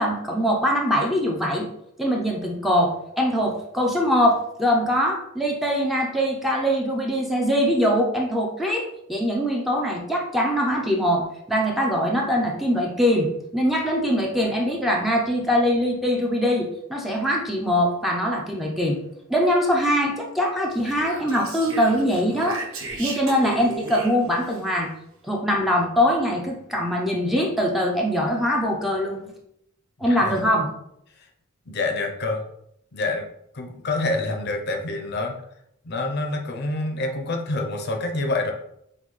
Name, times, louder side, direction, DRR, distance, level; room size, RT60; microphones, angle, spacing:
voice 1, 0.0-1.7 2.0-19.0 19.3-22.6 23.0-24.9 25.2-29.3 30.0-30.7, equal, ahead, -1 dB, 0.5 m, -22 dB
Speech, 20.7-24.6, right 2 dB, 85° right, 0.8 m, -35 dB
voice 2, 30.0-30.4 31.2-31.3 31.7-32.4 32.9-33.3 33.5-35.4 35.8-38.5, left 2 dB, 50° left, 4 dB, 0.6 m, -27 dB
5.4 x 2.2 x 3.1 m, 0.77 s
head